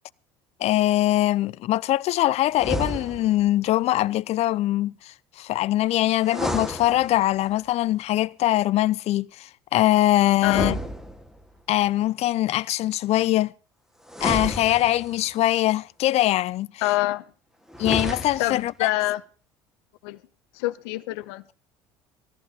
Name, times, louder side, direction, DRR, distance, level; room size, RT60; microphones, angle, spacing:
voice 1, 0.6-4.9 5.4-10.8 11.7-13.5 14.2-16.7 17.8-18.9, left 15 dB, 55° left, 0.7 m, -22 dB
sound 1, 2.5-3.5 6.2-7.5 10.4-11.6 14.1-15.3 17.7-18.7, equal, 5° right, 2.1 m, -31 dB
voice 2, 10.4-10.8 16.8-17.2 18.4-19.2 20.0-20.2 20.5-21.4, left 18 dB, 75° left, 1.2 m, -26 dB
19.5 x 14.5 x 4.2 m
hypercardioid pair, 70°, 13 cm